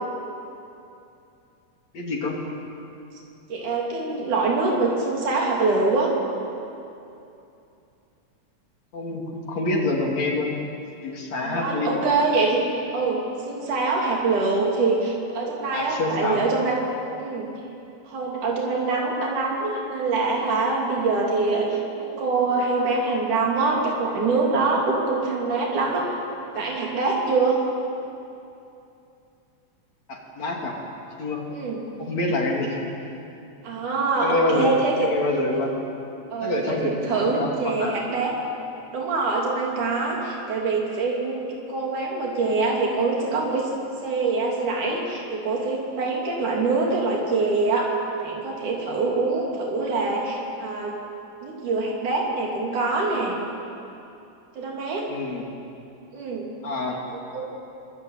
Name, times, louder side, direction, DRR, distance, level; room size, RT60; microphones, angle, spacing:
voice 1, 1.9-2.4 8.9-10.5 11.0-12.1 15.7-16.5 30.1-30.8 31.2-31.4 32.0-32.8 34.2-34.7 35.0-35.7 36.4-38.1 55.1-55.5 56.6-57.0, left 2 dB, 65° left, 0 dB, 4.0 m, -26 dB
voice 2, 3.5-6.1 11.4-12.6 12.9-16.8 17.2-17.5 18.0-26.1 26.5-27.6 31.5-31.8 33.6-35.1 36.3-38.3 38.9-43.7 44.0-51.0 51.4-53.4 54.5-55.1 56.1-56.5 57.1-57.4, right 3 dB, 85° right, -2 dB, 4.6 m, -24 dB
25.0 x 25.0 x 9.0 m, 2.7 s
omnidirectional pair, 3.4 m